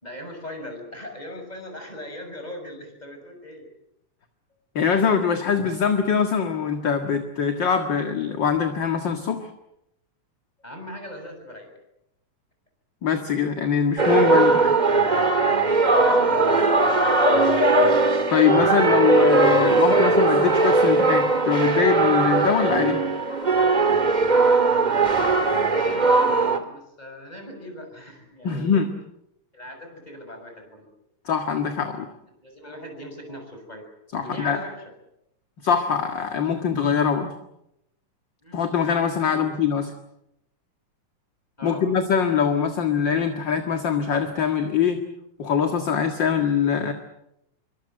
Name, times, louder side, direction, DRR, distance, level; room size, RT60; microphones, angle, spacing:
voice 1, 0.0-3.7 10.6-11.7 14.3-17.0 25.6-28.8 29.5-30.9 32.4-33.9 34.2-34.8 38.4-38.6 39.2-39.5 41.6-41.9, left 1 dB, 10° left, 5 dB, 6.7 m, -40 dB
voice 2, 4.8-9.5 13.0-14.7 18.3-23.0 28.4-28.9 31.3-32.1 34.1-34.6 35.6-37.3 38.5-39.9 41.6-45.0 45.4-46.9, left 7 dB, 40° left, 6 dB, 2.2 m, -23 dB
sound 1, 14.0-26.6, right 3 dB, 20° right, 1.3 m, -19 dB
27.0 x 24.0 x 7.8 m, 0.82 s
omnidirectional pair, 3.4 m